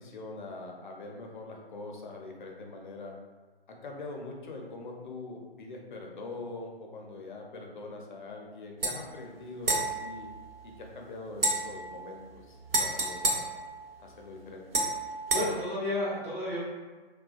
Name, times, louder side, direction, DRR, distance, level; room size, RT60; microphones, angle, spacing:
voice 1, 0.0-3.1 3.7-10.3 10.6-13.4 14.0-14.7, left 2 dB, 50° left, 1 dB, 0.6 m, -43 dB
sound 1, 8.8-9.0 9.6-10.9 11.4-14.2 14.7-15.5, right 2 dB, 65° right, 0.7 m, -31 dB
voice 2, 15.1-16.6, left 1 dB, 5° right, -12 dB, 0.4 m, -32 dB
2.7 x 2.2 x 2.4 m, 1.3 s
figure-of-eight pair, 130°, 31 cm